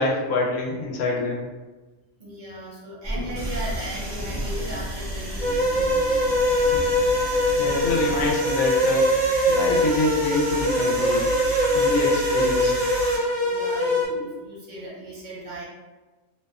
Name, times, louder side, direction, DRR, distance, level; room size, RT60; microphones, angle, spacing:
voice 1, 0.0-1.5 6.5-6.8 7.3-9.1 9.5-11.3 11.7-12.9, left 2 dB, 85° left, -1 dB, 1.0 m, -26 dB
voice 2, 2.2-6.4 11.7-11.9 13.4-15.6, right 1 dB, 50° right, -6 dB, 0.6 m, -37 dB
sound 1, 3.0-8.4, right 1 dB, 20° left, 0.4 m, -34 dB
sound 2, 3.4-13.2, equal, 90° right, 1.1 m, -34 dB
sound 3, 5.4-14.1, equal, 40° left, 0.9 m, -22 dB
2.7 x 2.1 x 2.3 m, 1.2 s
omnidirectional pair, 1.5 m